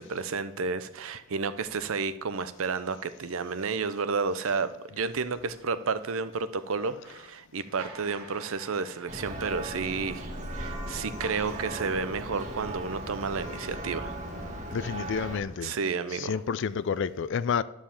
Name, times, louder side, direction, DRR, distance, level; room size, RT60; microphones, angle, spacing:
voice 1, 0.0-14.1 15.6-16.4, right 5 dB, 65° right, 0.6 m, -31 dB
sound 1, 7.8-14.6, right 3 dB, 85° right, 1.5 m, -49 dB
Church bell, 9.1-15.4, right 1 dB, 35° right, 1.6 m, -37 dB
voice 2, 14.7-15.7 16.1-17.6, left 6 dB, 55° left, 0.4 m, -29 dB
11.0 x 4.9 x 7.1 m
head